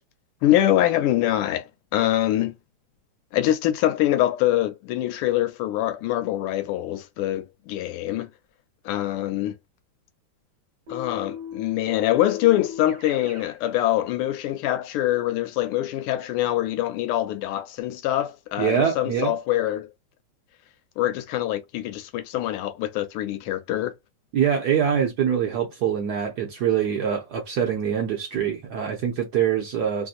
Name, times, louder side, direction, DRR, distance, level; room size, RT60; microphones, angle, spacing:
voice 1, 0.4-2.5 3.3-8.3 8.8-9.5 10.9-19.9 21.0-23.9, left 13 dB, 90° left, 1.5 m, -24 dB
Keyboard (musical), 10.9-13.6, left 7 dB, 45° right, 1.1 m, -38 dB
voice 2, 18.6-19.3 24.3-30.1, right 8 dB, 70° right, 1.0 m, -24 dB
3.4 x 2.6 x 2.4 m
omnidirectional pair, 2.4 m